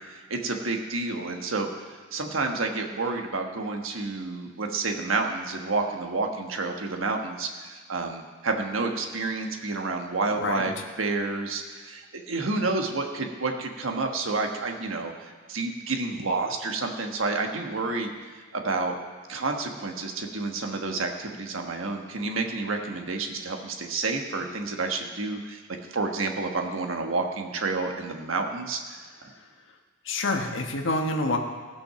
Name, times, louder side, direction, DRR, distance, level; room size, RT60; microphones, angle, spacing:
voice 1, 0.1-18.1 18.5-18.9 19.3-25.6 25.9-28.8, right 3 dB, 85° right, 3 dB, 1.3 m, -29 dB
voice 2, 30.0-31.4, left 2 dB, 70° left, 4 dB, 1.2 m, -27 dB
17.5 x 6.3 x 5.8 m, 1.5 s
head